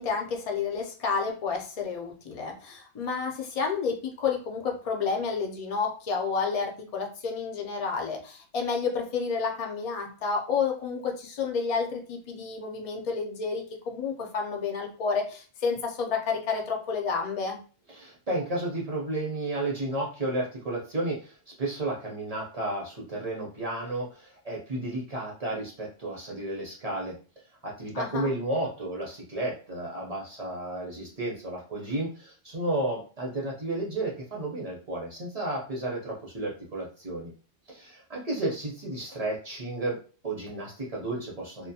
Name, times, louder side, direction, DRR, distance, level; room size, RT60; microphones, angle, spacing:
voice 1, 0.0-17.6 27.9-28.3, left 5 dB, 60° left, 1 dB, 0.3 m, -30 dB
voice 2, 17.9-27.2 27.6-37.3 37.7-40.0 40.2-41.7, right 2 dB, 40° right, -3 dB, 0.6 m, -32 dB
2.3 x 2.2 x 2.7 m, 0.38 s
omnidirectional pair, 1.3 m